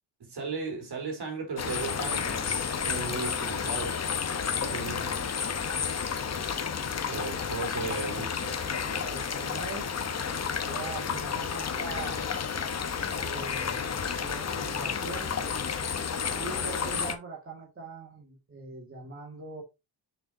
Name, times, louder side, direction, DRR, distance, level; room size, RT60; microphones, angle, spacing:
voice 1, 0.2-4.1 4.6-5.5 7.1-8.4, right 4 dB, 65° right, 3.8 m, -36 dB
sound 1, 1.6-17.1, left 6 dB, 35° left, 1.0 m, -31 dB
voice 2, 7.9-9.9 10.6-12.3 13.2-13.9 14.2-15.5 16.3-19.6, right 4 dB, 30° right, 2.0 m, -42 dB
6.7 x 6.4 x 2.7 m
wide cardioid pair, 170°, 43 cm